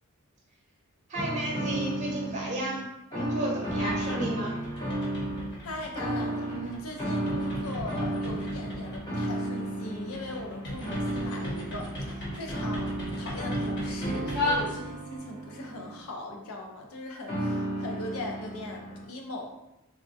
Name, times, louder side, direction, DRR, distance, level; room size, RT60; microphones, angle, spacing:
sound 1, 1.1-2.8 3.1-5.5 5.9-16.0 17.3-19.0, right 1 dB, 20° left, 0.8 m, -33 dB
voice 1, 1.1-2.8 3.1-4.5, right 1 dB, 35° right, -2 dB, 0.6 m, -33 dB
sound 2, 3.7-4.2 4.5-15.2, left 1 dB, 55° left, 1.0 m, -37 dB
voice 2, 5.6-19.5, left 2 dB, 75° left, 1 dB, 0.6 m, -39 dB
3.5 x 2.2 x 2.6 m, 0.89 s
head